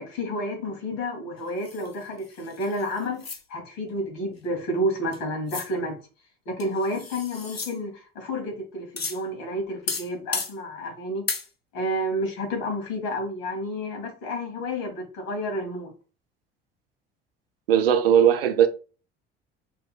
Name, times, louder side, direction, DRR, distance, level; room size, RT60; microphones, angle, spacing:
voice 1, 0.0-6.0 6.4-11.2 11.7-15.9, equal, 60° left, 3.1 m, -30 dB
sound 1, 1.6-3.4 5.1-5.2 5.5-5.7 6.6-7.8 9.0-9.2 9.9-10.5 11.3-11.5, left 4 dB, 90° left, 0.7 m, -33 dB
voice 2, 17.7-18.7, right 9 dB, 75° right, 0.7 m, -18 dB
6.5 x 6.1 x 2.4 m
figure-of-eight pair, 60°, 30 cm